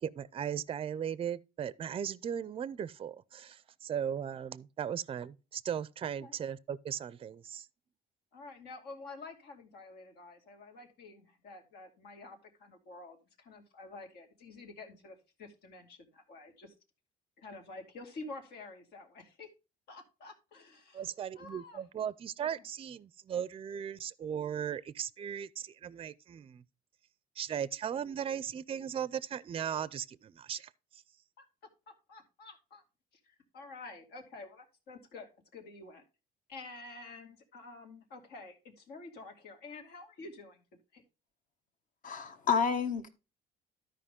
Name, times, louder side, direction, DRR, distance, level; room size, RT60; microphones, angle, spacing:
voice 1, 0.0-7.7 20.9-26.6 27.4-31.0, right 8 dB, 35° right, 0.5 m, -37 dB
voice 2, 8.3-16.7 17.4-19.5 19.9-21.1 21.4-21.8 22.4-22.5 31.4-31.5 31.9-32.8 33.2-36.0 36.5-40.6 40.9-41.0, left 3 dB, 70° left, 2.4 m, -49 dB
voice 3, 42.0-43.1, left 6 dB, 50° left, 1.3 m, -30 dB
12.5 x 5.1 x 3.6 m
cardioid pair, 110°, 17 cm